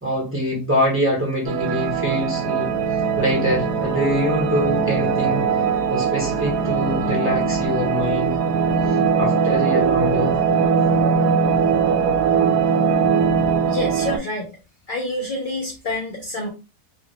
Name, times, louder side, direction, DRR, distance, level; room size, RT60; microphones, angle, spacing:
voice 1, 0.0-2.8 3.2-5.4 5.9-8.4 8.9-10.4, equal, 10° right, 1.0 m, -24 dB
sound 1, 1.5-14.2, right 6 dB, 80° right, 1.1 m, -20 dB
voice 2, 13.7-14.5 14.9-16.5, left 1 dB, 55° left, 0.6 m, -27 dB
2.9 x 2.4 x 2.9 m
omnidirectional pair, 1.7 m